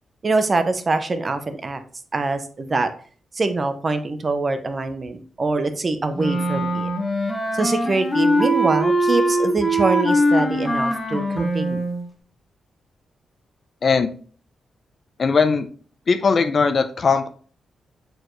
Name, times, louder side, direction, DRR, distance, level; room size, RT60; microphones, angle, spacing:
voice 1, 0.2-1.8 2.1-2.9 3.3-6.9 7.5-11.8, right 3 dB, 30° right, 9 dB, 0.6 m, -24 dB
Wind instrument woodwind instrument, 6.1-12.0, right 1 dB, 10° left, 1.4 m, -21 dB
voice 2, 15.2-15.7 16.1-17.3, left 5 dB, 40° left, 9 dB, 0.6 m, -19 dB
6.7 x 4.5 x 3.1 m, 0.43 s
wide cardioid pair, 135°, 0 cm